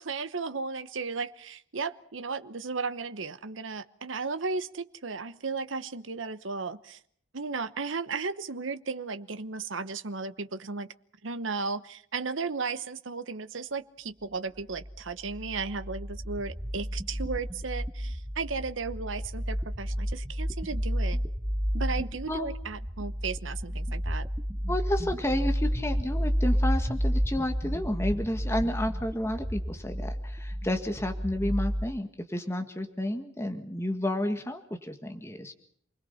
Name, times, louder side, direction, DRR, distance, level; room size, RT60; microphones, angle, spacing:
voice 1, 0.0-7.0 7.3-10.9 11.2-21.2 21.7-24.3, right 4 dB, 80° right, 11 dB, 1.0 m, -35 dB
sound 1, 14.7-31.9, equal, 15° right, 1.7 m, -31 dB
voice 2, 24.7-35.5, left 1 dB, 15° left, 6 dB, 1.8 m, -31 dB
29.0 x 21.0 x 5.7 m, 0.62 s
head